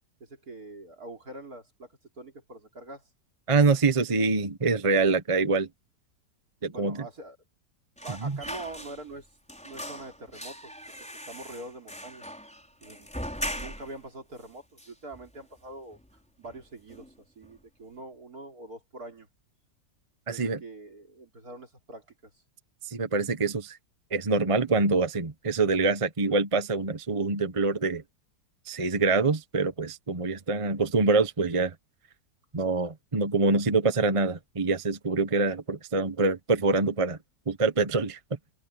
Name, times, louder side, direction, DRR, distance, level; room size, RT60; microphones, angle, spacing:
voice 1, 0.2-3.0 6.6-7.4 8.0-9.3 9.6-10.7 11.3-12.3 12.8-13.1 13.5-16.0 16.4-19.3 20.3-22.3, right 2 dB, 60° right, 4.3 m, -44 dB
voice 2, 3.5-5.7 6.6-7.0 8.2-8.4 20.3-20.6 22.9-23.8 24.1-28.0 28.7-31.7 32.5-37.2 37.5-38.2, right 3 dB, 25° right, 0.9 m, -25 dB
sound 1, 8.0-9.2 9.5-14.0 14.4-14.5 14.8-15.6 15.9-16.1 16.4-17.1 17.4-17.6, equal, 5° left, 5.7 m, -40 dB
omnidirectional pair, 1.8 m